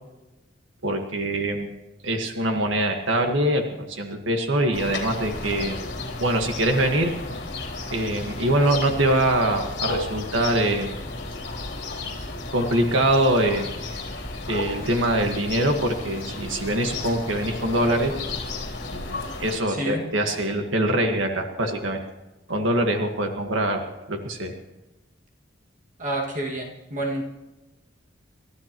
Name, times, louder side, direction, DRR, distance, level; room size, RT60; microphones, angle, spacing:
voice 1, 0.8-1.7 2.0-5.8 6.2-7.1 7.9-10.9 12.5-13.7 14.5-18.1 18.9-22.0 22.5-23.8 24.1-24.5, right 1 dB, 85° right, 4 dB, 1.6 m, -23 dB
sound 1, 4.7-19.6, left 2 dB, 60° left, 3.4 m, -33 dB
voice 2, 19.7-20.0 26.0-27.2, right 1 dB, 45° right, -1 dB, 2.1 m, -29 dB
29.5 x 13.0 x 3.0 m, 1.0 s
head